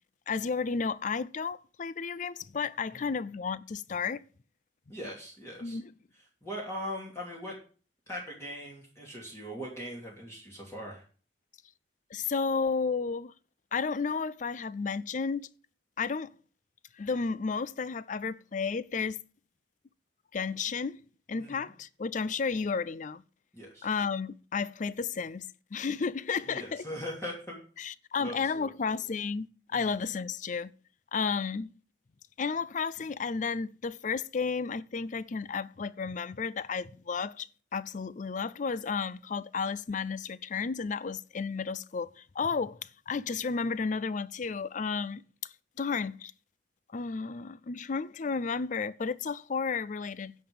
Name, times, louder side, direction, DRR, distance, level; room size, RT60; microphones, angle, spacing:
voice 1, 0.3-4.2 5.6-5.9 12.1-13.3 13.7-15.5 16.0-16.3 17.0-19.2 20.3-21.0 21.3-23.2 23.8-26.8 27.8-29.5 29.7-30.7 31.1-31.7 32.4-45.2 45.8-46.3 46.9-50.3, left 5 dB, 40° left, 0.4 m, -32 dB
voice 2, 4.9-5.8 6.4-7.6 8.1-11.0 21.4-21.7 23.5-23.9 26.5-27.6 28.2-28.7 29.7-29.9, equal, 15° left, 2.6 m, -40 dB
10.5 x 5.4 x 8.5 m
head